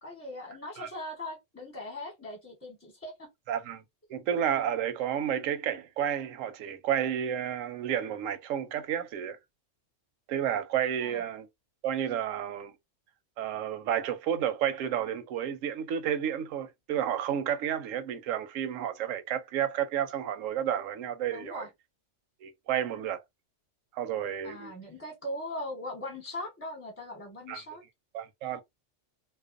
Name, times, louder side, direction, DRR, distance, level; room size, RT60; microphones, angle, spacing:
voice 1, 0.0-3.3 11.0-11.2 21.3-21.7 24.4-27.8, left 1 dB, 15° left, 0.9 m, -40 dB
voice 2, 3.5-3.8 4.1-9.4 10.3-11.5 11.8-12.7 13.4-21.7 22.4-23.2 23.9-24.7 27.5-27.6 28.1-28.6, right 9 dB, 90° right, 1.0 m, -31 dB
2.4 x 2.1 x 2.4 m
omnidirectional pair, 1.3 m